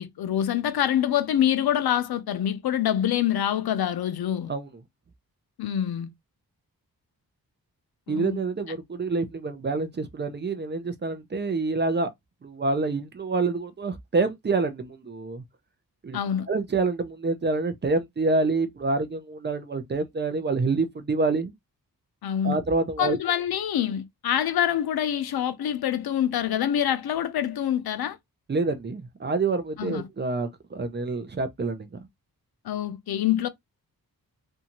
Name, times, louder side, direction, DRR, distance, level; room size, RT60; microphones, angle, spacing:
voice 1, 0.0-4.5 5.6-6.1 8.1-8.4 16.1-16.5 22.2-22.6 23.0-28.2 29.8-30.1 32.6-33.5, left 10 dB, 90° left, 0.5 m, -25 dB
voice 2, 8.1-12.1 12.4-15.4 16.0-16.2 16.5-21.5 22.4-23.2 28.5-31.9, right 3 dB, 30° right, 0.4 m, -27 dB
2.6 x 2.3 x 2.8 m
wide cardioid pair, 150°, 37 cm